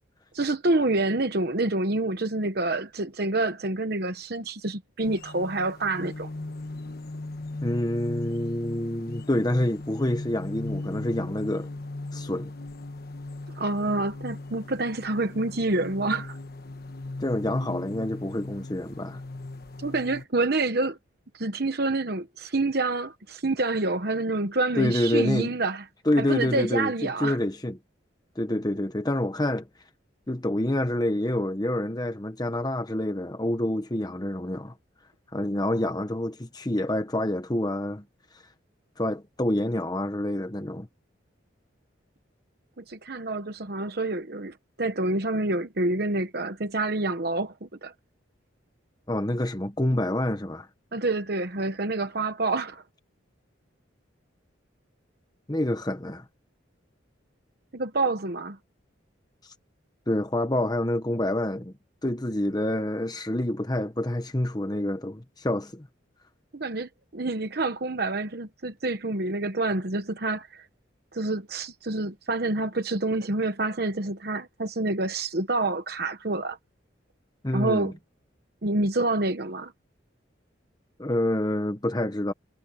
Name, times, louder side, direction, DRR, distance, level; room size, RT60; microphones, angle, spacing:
voice 1, 0.3-6.3 13.5-16.4 19.8-21.0 21.3-25.8 26.2-27.4 42.8-47.9 50.9-52.8 57.7-58.6 66.5-70.7 71.1-76.6 77.5-77.9 78.6-79.7, right 2 dB, 50° right, 1.0 m, -27 dB
sound 1, 5.0-20.3, left 2 dB, 50° left, 1.2 m, -38 dB
voice 2, 7.6-11.7 12.1-12.5 17.2-19.2 24.8-25.5 26.1-27.8 28.4-29.7 30.3-34.7 35.3-38.0 38.3-38.4 39.0-40.9 49.1-50.7 55.5-56.2 59.4-59.5 60.1-61.7 62.0-65.9 77.4-77.9 81.0-82.3, left 1 dB, 20° left, 1.0 m, -27 dB
head